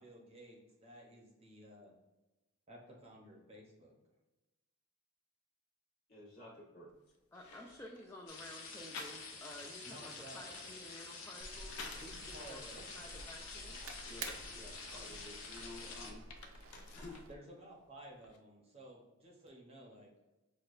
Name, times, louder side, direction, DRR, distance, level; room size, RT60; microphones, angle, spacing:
voice 1, 0.0-1.9 2.7-3.9 9.8-10.8 12.0-13.0 17.3-20.1, right 1 dB, 25° right, -1 dB, 0.7 m, -55 dB
voice 2, 6.1-6.9 14.0-16.2 16.9-17.2, left 2 dB, 45° left, -6 dB, 1.5 m, -52 dB
sound 1, 6.9-7.0 7.3-8.1 8.9-9.6 9.9-12.2 12.7-14.6 15.1-17.3 17.6-18.4, left 4 dB, 90° left, 0.5 m, -53 dB
voice 3, 7.3-13.9, left 1 dB, 10° left, -2 dB, 0.3 m, -53 dB
sound 2, 8.3-16.1, left 4 dB, 70° left, 0.9 m, -48 dB
sound 3, 11.4-17.4, right 3 dB, 65° right, 0.4 m, -51 dB
6.3 x 2.2 x 2.4 m, 1.1 s
head